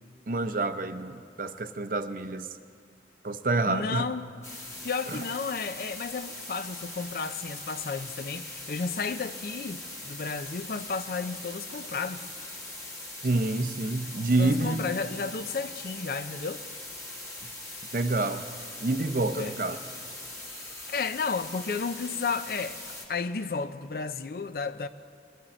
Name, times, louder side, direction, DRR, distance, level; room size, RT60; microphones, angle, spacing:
voice 1, 0.3-2.5 3.2-4.1 5.1-5.2 13.2-14.8 17.9-18.4 18.8-19.8, right 2 dB, 50° right, 0.6 m, -28 dB
voice 2, 3.7-4.3 4.8-12.3 14.4-16.6 19.4-19.6 20.9-24.9, left 4 dB, 55° left, 0.5 m, -33 dB
sound 1, 4.4-23.1, left 1 dB, 15° left, 1.7 m, -41 dB
21.0 x 12.5 x 4.3 m
head